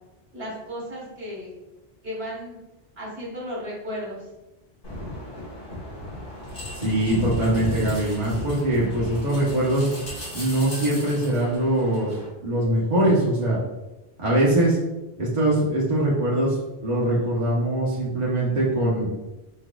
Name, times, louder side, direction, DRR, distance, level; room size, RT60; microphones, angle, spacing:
voice 1, 0.3-1.5 2.0-2.6 3.0-4.3, equal, 70° right, -5 dB, 1.7 m, -34 dB
sound 1, 4.8-12.3, left 1 dB, 70° left, 1.7 m, -34 dB
voice 2, 6.8-9.9 10.3-12.1 12.4-13.6 14.2-14.8 15.2-16.6 16.8-19.1, right 1 dB, 45° right, -6 dB, 1.1 m, -22 dB
4.6 x 4.6 x 2.3 m, 1.0 s
omnidirectional pair, 1.1 m